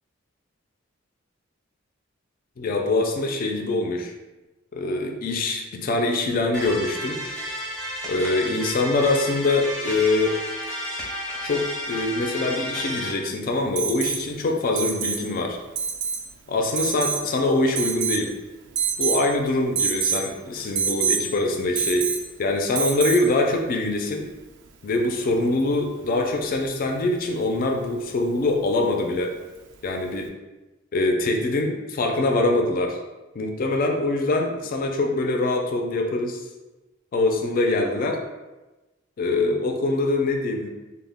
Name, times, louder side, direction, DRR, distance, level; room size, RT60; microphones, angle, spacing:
voice 1, 2.6-4.1 4.7-7.2 8.1-10.4 11.4-15.6 16.5-18.3 19.0-22.1 22.4-24.3 24.8-29.3 29.8-30.3 30.9-33.0 33.3-36.4 37.1-38.2 39.2-40.7, left 2 dB, 45° left, 2 dB, 0.3 m, -24 dB
sound 1, 6.5-13.1, equal, 5° left, 0.6 m, -32 dB
Alarm, 13.8-14.2 14.8-15.2 15.8-16.2 16.8-17.2 17.8-18.3 18.8-19.2 19.8-20.2 20.8-21.2 21.8-22.3 22.8-23.3 25.0-25.1, right 7 dB, 60° right, 0.3 m, -25 dB
2.1 x 2.0 x 3.4 m, 1.1 s
head